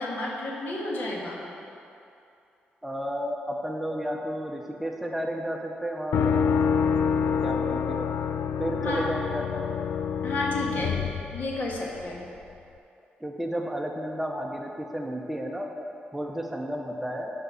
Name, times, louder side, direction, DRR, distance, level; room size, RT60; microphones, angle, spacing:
voice 1, 0.0-1.5 8.8-9.1 10.2-11.0 11.3-12.3, left 2 dB, 60° left, -3 dB, 1.6 m, -31 dB
voice 2, 2.8-6.3 7.4-8.1 8.6-9.7 13.2-15.7 16.1-17.3, equal, 5° right, 1 dB, 0.6 m, -32 dB
sound 1, 6.1-12.0, left 6 dB, 85° left, 0.3 m, -27 dB
7.9 x 5.1 x 6.9 m, 2.7 s
cardioid pair, 120°, 4 cm